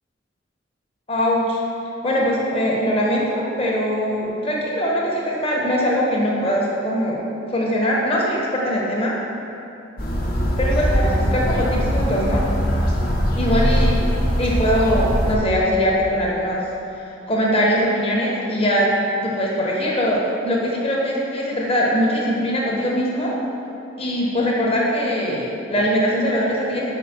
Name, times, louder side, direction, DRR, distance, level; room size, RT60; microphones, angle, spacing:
voice 1, 1.1-1.6 2.0-7.2 7.5-9.2 10.6-12.5 13.4-14.0 14.4-16.6 17.0-18.9 19.2-23.4 24.0-26.9, equal, 30° left, -3 dB, 1.2 m, -21 dB
sound 1, 10.0-15.4, equal, 50° left, 1.2 m, -21 dB
5.3 x 5.0 x 5.9 m, 2.8 s
head